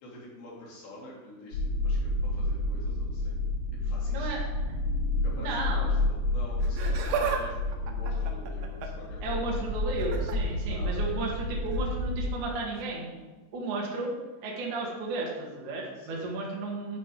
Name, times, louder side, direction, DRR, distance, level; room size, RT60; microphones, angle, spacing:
voice 1, 0.0-3.4 3.8-4.3 5.2-9.6 10.7-11.3 16.0-16.3, left 1 dB, 75° left, -6 dB, 5.2 m, -46 dB
sound 1, 1.5-12.2, left 2 dB, 55° left, 1.4 m, -30 dB
voice 2, 4.1-4.4 5.4-5.9 9.2-13.1 13.5-14.1 14.4-17.0, right 3 dB, 50° right, -3 dB, 3.0 m, -34 dB
Laughter, 6.6-7.4 7.7-9.1 10.0-10.4 11.7-11.9 12.8-12.9, right 6 dB, 85° right, 3.3 m, -33 dB
10.5 x 9.2 x 3.8 m, 1.2 s
omnidirectional pair, 5.0 m